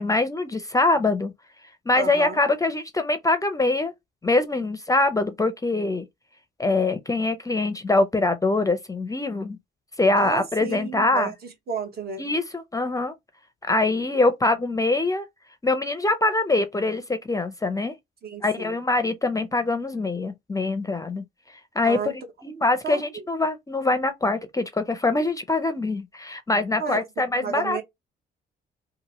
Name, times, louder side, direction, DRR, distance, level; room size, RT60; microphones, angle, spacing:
voice 1, 0.0-1.3 1.9-3.9 4.2-6.1 6.6-9.6 10.0-11.3 12.2-13.1 13.7-15.3 15.6-17.9 18.4-21.2 21.8-27.8, left 2 dB, 15° left, 0.5 m, -23 dB
voice 2, 1.9-2.4 10.2-11.3 11.7-12.2 18.2-18.8 21.8-22.1 22.5-23.3 26.8-27.0 27.4-27.8, right 6 dB, 50° right, 1.0 m, -32 dB
2.8 x 2.6 x 2.9 m
cardioid pair, 90°, 20 cm